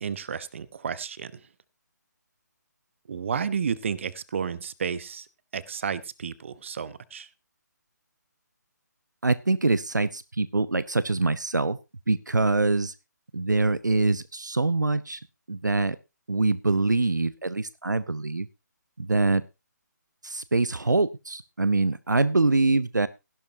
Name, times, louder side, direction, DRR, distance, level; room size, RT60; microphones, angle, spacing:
voice 1, 0.0-1.4 3.1-5.3 5.5-7.3, right 6 dB, 40° right, 18 dB, 1.0 m, -32 dB
voice 2, 9.2-11.8 12.1-12.9 13.3-15.2 15.5-16.0 16.3-18.5 19.0-19.4 20.2-23.1, right 3 dB, 75° right, 17 dB, 0.7 m, -24 dB
16.0 x 11.5 x 2.8 m, 0.25 s
figure-of-eight pair, 145°, 10 cm